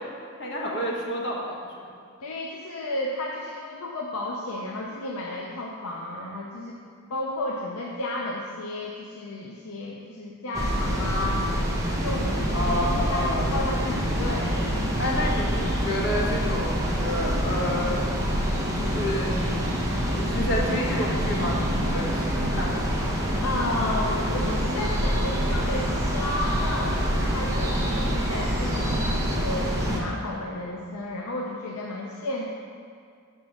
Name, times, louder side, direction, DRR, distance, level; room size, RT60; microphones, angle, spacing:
voice 1, 0.4-1.9 12.5-13.5 15.0-18.1 18.8-19.5 20.1-22.8, left 1 dB, 55° left, -3 dB, 1.3 m, -29 dB
voice 2, 2.2-6.8 7.1-11.4 12.0-14.7 23.4-32.5, left 1 dB, 80° left, -2 dB, 0.6 m, -32 dB
sound 1, 10.5-30.0, equal, 15° right, 0.9 m, -26 dB
6.1 x 4.4 x 6.3 m, 2.3 s
head